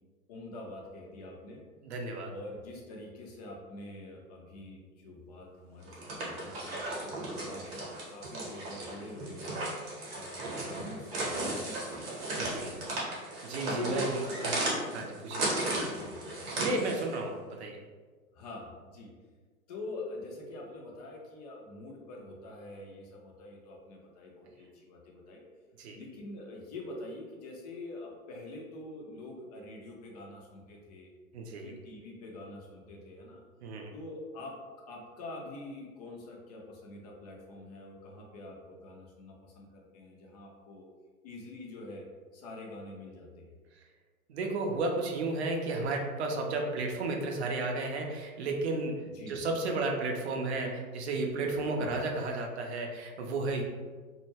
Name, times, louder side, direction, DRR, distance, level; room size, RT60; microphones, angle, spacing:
voice 1, 0.3-1.6 2.3-9.6 10.1-12.0 13.7-14.4 15.2-16.4 18.3-19.1 19.7-25.4 25.9-31.1 31.6-33.4 33.9-34.5 34.9-40.9 41.2-42.0 42.3-43.5 49.1-49.4 51.8-51.9, left 2 dB, 30° left, -1 dB, 0.4 m, -45 dB
voice 2, 1.8-2.3 12.3-12.8 13.2-14.6 14.9-15.5 16.6-17.8 25.8-26.0 31.3-31.7 33.6-33.9 44.3-53.6, right 2 dB, 50° right, 2 dB, 0.5 m, -33 dB
sound 1, 5.8-17.2, right 2 dB, 30° right, 0.9 m, -35 dB
2.2 x 2.1 x 3.1 m, 1.4 s
figure-of-eight pair, 100°, 43 cm